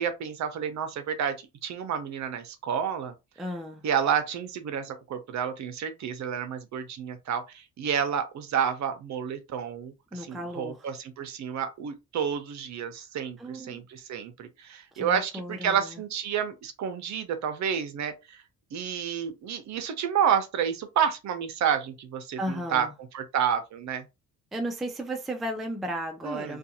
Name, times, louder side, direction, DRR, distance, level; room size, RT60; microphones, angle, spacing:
voice 1, 0.0-1.3 1.6-3.1 3.8-18.4 18.7-22.9 23.1-24.0 26.2-26.6, right 8 dB, 55° right, 0.6 m, -30 dB
voice 2, 3.4-3.8 10.1-10.9 13.4-13.8 14.9-16.0 22.4-22.9 24.5-26.6, right 1 dB, ahead, 0.3 m, -34 dB
2.5 x 2.3 x 2.8 m
cardioid pair, 145°, 34 cm